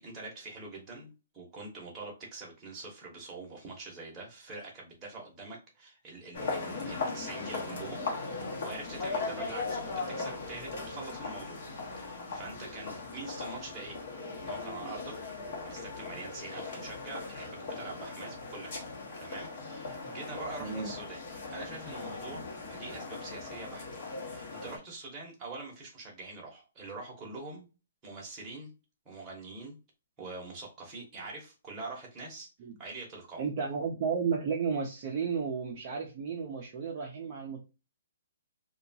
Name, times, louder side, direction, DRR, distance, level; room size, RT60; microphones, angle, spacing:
voice 1, 0.0-11.6 12.0-14.0 14.4-15.1 15.6-18.8 19.2-21.2 21.5-23.9 24.2-27.7 28.0-28.7 29.0-29.8 30.2-32.5 32.8-33.4, right 3 dB, 15° right, -3 dB, 0.9 m, -44 dB
sound 1, 6.3-24.8, left 3 dB, 45° left, 0.9 m, -39 dB
voice 2, 20.6-20.9 32.6-32.8 33.4-37.6, right 6 dB, 30° right, -1 dB, 0.4 m, -33 dB
2.8 x 2.2 x 2.7 m, 0.30 s
hypercardioid pair, 170°, 0 cm